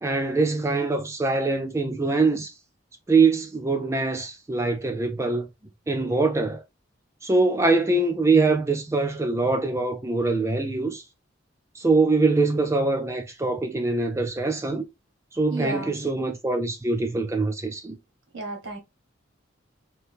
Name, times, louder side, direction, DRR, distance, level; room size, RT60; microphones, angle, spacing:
voice 1, 0.0-2.5 3.1-5.5 5.9-6.6 7.2-11.0 11.7-14.8 15.3-18.0, right 3 dB, 15° right, 0.3 m, -23 dB
voice 2, 15.5-15.9 18.3-18.8, right 3 dB, 85° right, 1.3 m, -32 dB
2.9 x 2.6 x 3.3 m
head